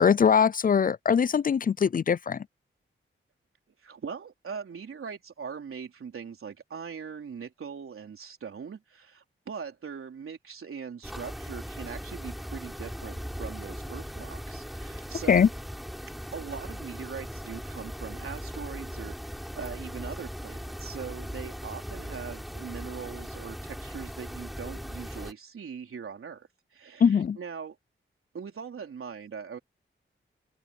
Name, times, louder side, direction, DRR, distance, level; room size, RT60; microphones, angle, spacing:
voice 1, 0.0-2.4 15.3-15.5 27.0-27.4, left 7 dB, 40° left, 0.4 m, -22 dB
voice 2, 3.8-15.5 16.3-27.8 28.3-29.6, right 6 dB, 85° right, 3.9 m, -41 dB
sound 1, 11.0-25.3, equal, ahead, 5.0 m, -39 dB
wide cardioid pair, 85°, 21 cm